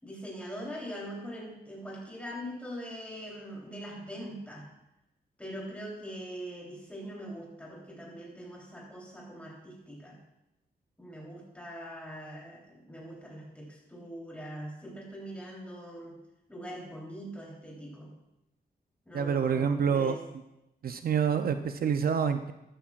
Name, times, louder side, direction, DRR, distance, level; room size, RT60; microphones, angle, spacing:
voice 1, 0.0-4.7 5.4-10.2 11.0-16.2 16.5-18.1 19.1-20.2, equal, 5° left, -3 dB, 3.4 m, -42 dB
voice 2, 19.1-20.2 20.8-22.5, right 7 dB, 60° right, 8 dB, 0.6 m, -27 dB
13.5 x 12.5 x 2.4 m, 0.90 s
wide cardioid pair, 120°, 17 cm